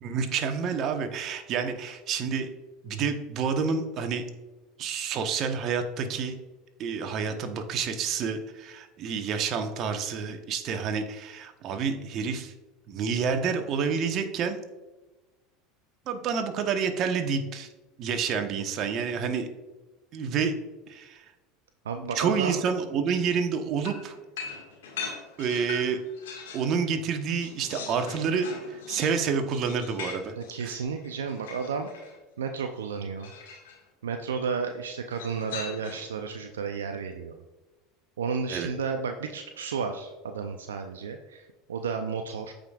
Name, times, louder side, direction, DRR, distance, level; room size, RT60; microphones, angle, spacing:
voice 1, 0.0-2.5 2.8-4.2 4.8-6.4 6.8-12.5 12.9-14.6 16.1-17.7 18.0-19.5 20.1-20.5 20.9-21.2 22.1-24.2 25.4-26.0 26.5-30.3 30.6-30.8 38.5-38.7, right 6 dB, 50° right, 6 dB, 1.1 m, -29 dB
voice 2, 21.8-22.6 30.4-31.9 32.4-33.3 34.0-37.4 38.2-41.4 41.7-42.5, right 5 dB, 85° right, 6 dB, 0.5 m, -32 dB
sound 1, 23.8-26.7 27.1-32.2 33.2-33.8 35.1-36.2, left 5 dB, 75° left, 1.8 m, -41 dB
14.0 x 5.1 x 2.4 m, 1.1 s
hypercardioid pair, 80°, 0 cm